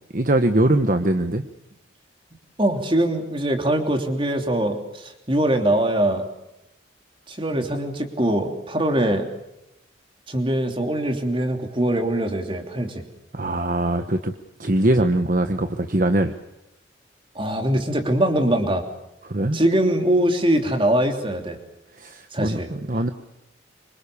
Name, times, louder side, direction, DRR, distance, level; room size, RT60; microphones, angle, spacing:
voice 1, 0.1-1.4 7.5-7.6 13.3-14.3 14.6-16.4 19.2-19.6 21.9-23.1, right 1 dB, 45° right, 8 dB, 1.2 m, -22 dB
voice 2, 2.6-6.2 7.3-9.3 10.3-13.0 17.3-18.8 19.5-21.6 22.3-22.7, right 1 dB, 25° right, 5 dB, 3.1 m, -22 dB
26.0 x 25.5 x 7.0 m, 0.87 s
head